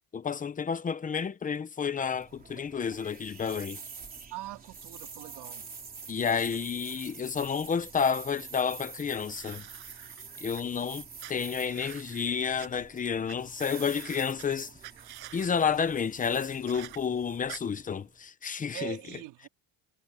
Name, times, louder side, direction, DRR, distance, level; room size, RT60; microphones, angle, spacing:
voice 1, 0.0-3.8 6.1-9.6 10.4-14.7 15.3-19.0, left 6 dB, 20° left, 0.9 m, -30 dB
sound 1, 2.0-18.2, right 5 dB, 20° right, 3.6 m, -47 dB
voice 2, 4.3-5.7 18.7-19.5, right 18 dB, 85° right, 3.5 m, -42 dB
sound 2, 9.2-10.6 11.2-12.7 13.3-13.4 13.6-14.4 14.8-15.5 16.7-17.0 17.5-17.6, right 16 dB, 70° right, 6.6 m, -47 dB
cardioid pair, 165°, 39 cm